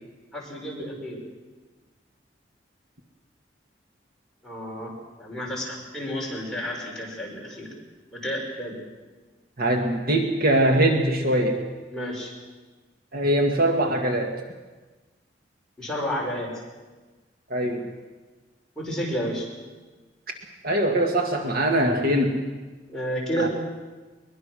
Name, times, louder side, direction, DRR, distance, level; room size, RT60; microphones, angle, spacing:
voice 1, 0.3-1.2 4.4-4.9 5.2-7.7 8.1-8.8 11.9-12.3 15.8-16.5 18.8-19.5 22.9-23.5, equal, 5° left, -4 dB, 6.1 m, -31 dB
voice 2, 9.6-11.6 13.1-14.3 17.5-17.9 20.6-22.4 23.4-23.5, right 1 dB, 55° right, 3 dB, 1.9 m, -22 dB
22.5 x 22.0 x 6.4 m, 1.3 s
head